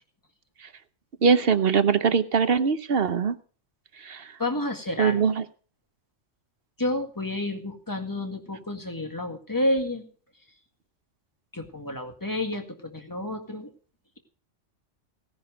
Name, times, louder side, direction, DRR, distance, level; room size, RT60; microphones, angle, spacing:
voice 1, 1.2-3.4 4.0-4.2 5.0-5.4, right 6 dB, 55° right, 12 dB, 1.0 m, -22 dB
voice 2, 4.4-5.2 6.8-10.1 11.5-13.7, left 1 dB, 15° left, 5 dB, 1.9 m, -30 dB
17.0 x 10.0 x 5.1 m, 0.40 s
omnidirectional pair, 1.3 m